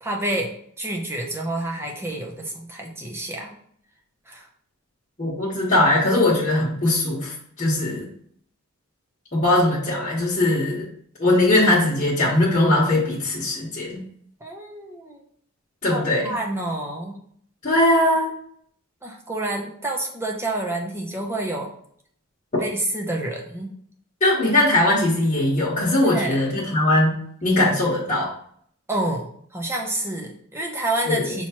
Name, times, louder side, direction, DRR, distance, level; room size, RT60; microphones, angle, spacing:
voice 1, 0.0-3.5 4.3-4.5 14.4-15.2 15.9-17.2 19.0-21.7 22.6-23.7 26.0-26.7 28.9-31.5, right 1 dB, 10° right, 0 dB, 0.6 m, -29 dB
voice 2, 5.2-8.1 9.3-10.9 11.2-14.0 15.8-16.3 17.6-18.3 24.2-28.3 31.1-31.3, left 1 dB, 35° left, -9 dB, 1.1 m, -20 dB
5.7 x 3.0 x 2.9 m, 0.63 s
head